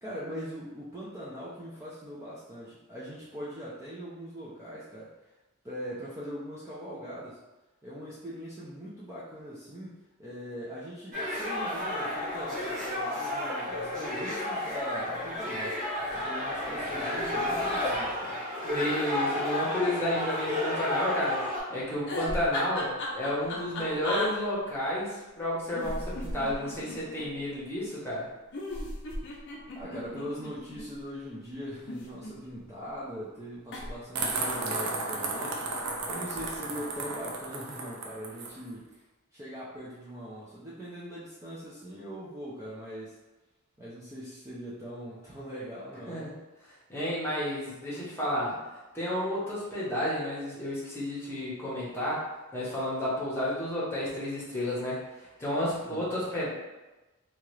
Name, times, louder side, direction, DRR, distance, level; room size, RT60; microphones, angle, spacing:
voice 1, 0.0-5.1 5.6-7.4 7.8-18.4 29.7-39.0 39.3-43.2 43.8-46.3 55.8-56.1, equal, 15° right, -8 dB, 0.4 m, -41 dB
sound 1, 11.1-21.6, left 1 dB, 40° right, 1.3 m, -31 dB
voice 2, 18.6-21.4 21.7-28.3 46.1-46.4 46.6-48.6 48.9-52.2 52.5-56.5, left 1 dB, 10° left, -7 dB, 0.9 m, -31 dB
sound 2, 22.0-24.3 25.7-27.3 28.5-30.8 31.7-32.7 33.7-33.9 34.2-34.6, left 1 dB, 55° left, 0.6 m, -35 dB
sound 3, 34.1-38.6, right 3 dB, 80° right, 0.5 m, -34 dB
2.8 x 2.4 x 3.1 m, 1.1 s
head